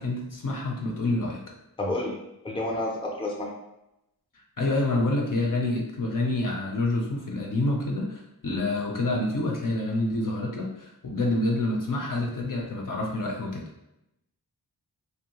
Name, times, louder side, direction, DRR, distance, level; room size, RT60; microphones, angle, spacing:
voice 1, 0.0-1.4 4.4-13.6, left 2 dB, 55° left, -1 dB, 0.6 m, -27 dB
voice 2, 1.8-2.2 2.4-3.5, left 1 dB, 15° left, -2 dB, 0.5 m, -29 dB
2.6 x 2.2 x 2.8 m, 0.88 s
wide cardioid pair, 80°, 38 cm